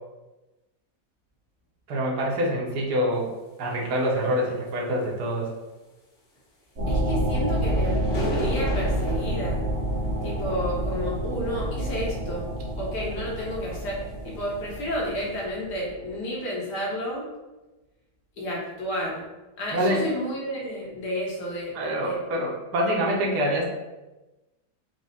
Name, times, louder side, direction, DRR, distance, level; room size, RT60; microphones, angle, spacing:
voice 1, 1.9-3.3 3.6-5.5 19.7-20.1 21.7-23.7, equal, 75° right, -1 dB, 1.4 m, -25 dB
sound 1, 6.7-15.9, right 1 dB, 50° right, 1.6 m, -28 dB
voice 2, 6.9-9.6 10.2-12.5 12.8-14.0 14.2-17.3 18.4-19.3 19.6-21.7 22.0-22.2, equal, 80° left, -4 dB, 1.8 m, -31 dB
sound 2, 7.4-14.0 14.3-14.5 15.1-15.4, equal, 40° left, 1.1 m, -38 dB
4.7 x 2.1 x 4.0 m, 1.1 s
omnidirectional pair, 1.8 m